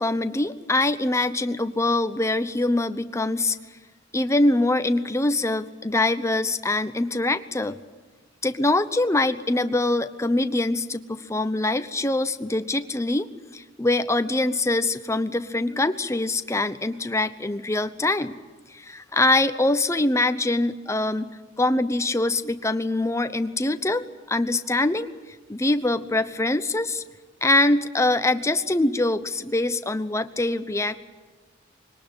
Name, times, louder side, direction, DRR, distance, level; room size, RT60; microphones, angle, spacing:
voice 1, 0.0-3.6 4.1-7.8 8.4-18.4 18.7-21.3 21.6-25.1 25.5-27.0 27.4-31.0, left 2 dB, 15° left, 10 dB, 0.8 m, -24 dB
22.0 x 19.0 x 9.8 m, 1.3 s
head